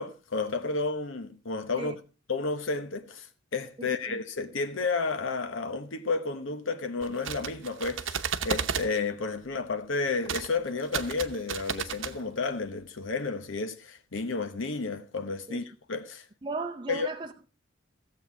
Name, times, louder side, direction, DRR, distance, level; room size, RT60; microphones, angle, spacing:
voice 1, 0.0-1.9 2.3-3.3 3.5-16.3 16.9-17.1, left 4 dB, 80° left, 0.9 m, -31 dB
voice 2, 3.8-4.2 15.5-15.6 16.4-17.5, right 3 dB, 25° right, 0.6 m, -36 dB
sound 1, 7.0-8.9 10.2-10.5 10.8-12.1, right 7 dB, 80° right, 0.9 m, -33 dB
15.0 x 7.8 x 4.5 m
head